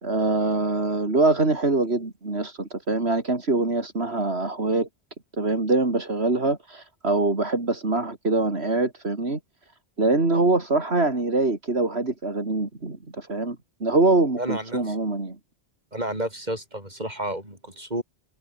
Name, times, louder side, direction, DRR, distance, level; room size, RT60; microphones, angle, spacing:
voice 1, 0.0-4.9 5.4-9.4 10.0-15.4, right 2 dB, 80° right, 3.8 m, -24 dB
voice 2, 14.4-15.0 15.9-18.0, right 1 dB, 40° right, 8.1 m, -31 dB
omnidirectional pair, 1.1 m